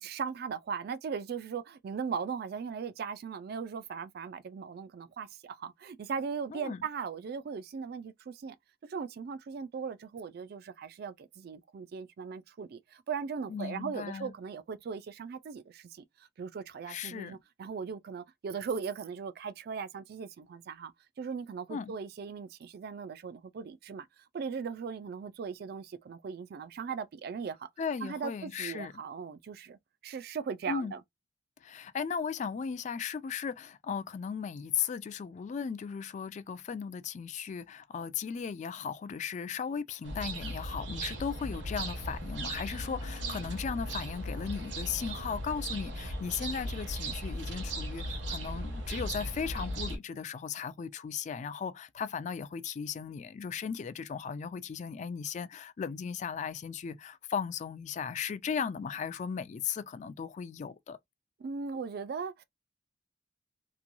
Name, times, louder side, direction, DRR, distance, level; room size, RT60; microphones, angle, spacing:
voice 1, 0.0-8.6 8.8-16.0 16.4-20.9 21.2-24.1 24.3-27.7 28.0-31.0 61.4-62.4, right 6 dB, 60° right, 0.3 m, -38 dB
voice 2, 6.5-6.8 13.5-14.3 16.9-17.4 21.7-21.9 27.8-28.9 30.7-30.9 31.6-61.0, left 6 dB, 40° left, 0.3 m, -36 dB
sound 1, 40.0-50.0, right 1 dB, 80° right, 1.0 m, -37 dB
3.0 x 2.2 x 2.5 m
head